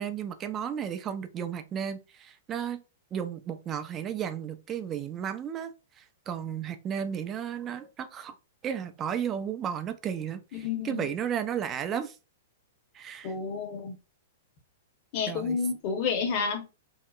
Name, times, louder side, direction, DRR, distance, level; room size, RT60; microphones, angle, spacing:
voice 1, 0.0-2.8 3.1-5.7 6.0-8.3 8.6-12.2 12.9-13.3 15.3-15.6, right 8 dB, 25° right, 0.4 m, -33 dB
voice 2, 10.5-11.1 13.2-14.0 15.1-16.6, left 5 dB, 45° left, 0.8 m, -30 dB
2.7 x 2.1 x 2.4 m
hypercardioid pair, 110°, 0 cm